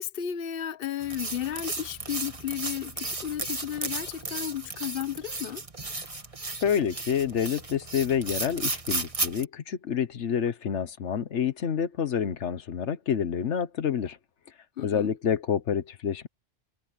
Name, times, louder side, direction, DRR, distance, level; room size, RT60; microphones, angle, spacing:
voice 1, 0.0-5.6 14.8-15.1, left 10 dB, 55° left, 1.1 m, -33 dB
sound 1, 1.0-9.4, right 2 dB, 30° right, 1.7 m, -34 dB
voice 2, 6.6-14.2 14.8-16.3, left 8 dB, 80° left, 1.3 m, -28 dB
omnidirectional pair, 1.2 m